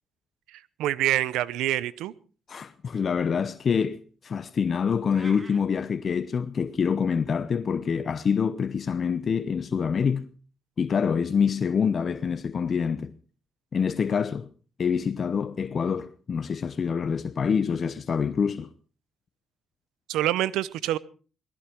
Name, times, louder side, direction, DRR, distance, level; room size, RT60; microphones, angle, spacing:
voice 1, 0.5-2.1 20.1-21.0, right 14 dB, 90° right, 0.7 m, -26 dB
voice 2, 2.5-10.3 10.8-13.1 13.7-14.5 14.8-18.7, left 6 dB, 55° left, 0.9 m, -26 dB
sound 1, 5.1-5.6, right 3 dB, 30° right, 1.7 m, -45 dB
19.5 x 15.5 x 4.6 m
supercardioid pair, 60°, 0 cm